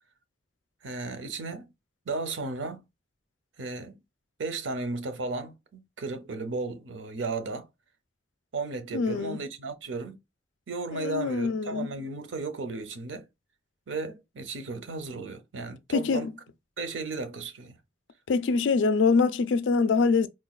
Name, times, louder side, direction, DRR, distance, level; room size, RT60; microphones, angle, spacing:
voice 1, 0.8-1.7 2.1-2.8 3.6-4.0 4.4-7.7 8.5-10.2 10.7-13.3 13.9-16.3 16.8-17.8, right 3 dB, 90° right, 0.7 m, -34 dB
voice 2, 8.9-9.4 10.9-11.9 15.9-16.3 18.3-20.3, left 4 dB, 80° left, 0.4 m, -24 dB
4.1 x 2.2 x 2.3 m
head